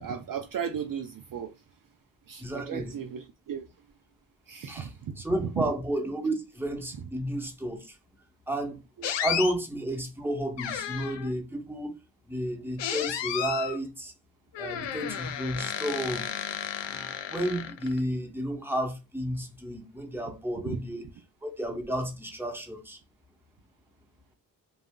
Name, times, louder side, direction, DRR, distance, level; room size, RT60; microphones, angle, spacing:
voice 1, 0.0-1.6 2.3-3.7 4.5-5.6 7.0-7.1 9.0-9.1 20.6-20.8, right 7 dB, 50° right, 0.5 m, -35 dB
voice 2, 2.4-2.9 4.7-4.9 5.2-8.0 8.5-8.8 9.2-12.0 12.3-14.1 14.6-16.3 16.9-21.0 21.4-23.0, right 1 dB, 5° right, 1.0 m, -32 dB
sound 1, 9.0-9.5 10.6-11.3 12.8-13.8 14.5-18.0, left 9 dB, 75° left, 0.6 m, -33 dB
2.4 x 2.0 x 3.6 m
supercardioid pair, 40°, 44 cm